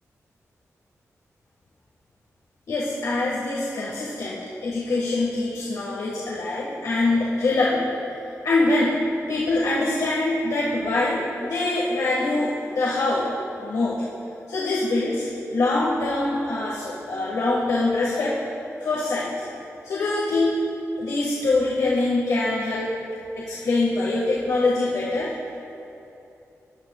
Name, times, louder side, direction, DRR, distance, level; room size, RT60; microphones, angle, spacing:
voice 1, 2.7-7.9 8.4-8.9 9.3-13.3 13.6-14.0 14.5-15.3 15.5-18.4 18.8-19.4 19.8-20.6 21.0-23.0 23.4-25.3, left 2 dB, 90° left, -6 dB, 1.7 m, -24 dB
19.0 x 12.5 x 2.4 m, 2.9 s
cardioid pair, 80°, 6 cm